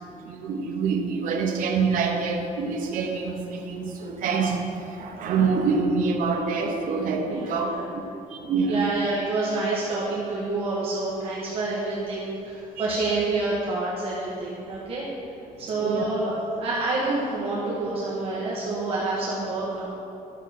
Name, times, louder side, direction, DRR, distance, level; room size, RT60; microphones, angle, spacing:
voice 1, 0.2-7.7 8.3-8.9 13.1-13.2 15.8-16.0, right 5 dB, 70° right, 2 dB, 1.0 m, -26 dB
voice 2, 7.2-7.9 8.6-15.1 15.6-19.9, right 2 dB, 40° right, -7 dB, 1.4 m, -28 dB
11.5 x 6.3 x 4.3 m, 2.8 s
cardioid pair, 180°, 14 cm